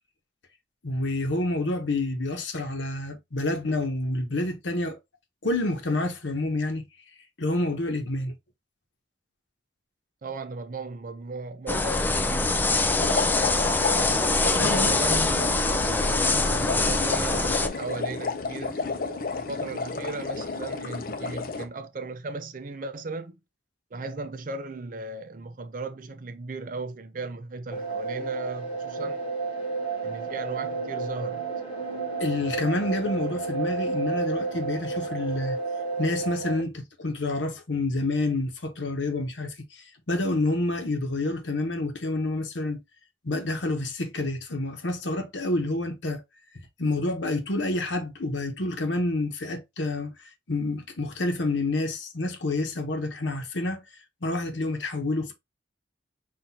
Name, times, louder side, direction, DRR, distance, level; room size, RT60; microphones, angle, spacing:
voice 1, 0.8-5.0 5.4-6.9 7.4-8.3 14.5-14.9 32.2-35.6 36.0-42.8 43.2-46.2 46.8-50.1 50.5-53.8 54.2-55.3, left 2 dB, 90° left, 1.0 m, -28 dB
voice 2, 10.2-12.9 14.5-23.4 23.9-29.2 30.0-31.5, right 3 dB, 45° right, 0.5 m, -36 dB
sound 1, 11.7-17.7, left 3 dB, 10° left, 0.3 m, -24 dB
sound 2, 12.9-21.7, left 4 dB, 50° left, 0.6 m, -32 dB
sound 3, 27.7-36.6, right 4 dB, 30° left, 1.1 m, -31 dB
5.8 x 2.6 x 2.8 m
head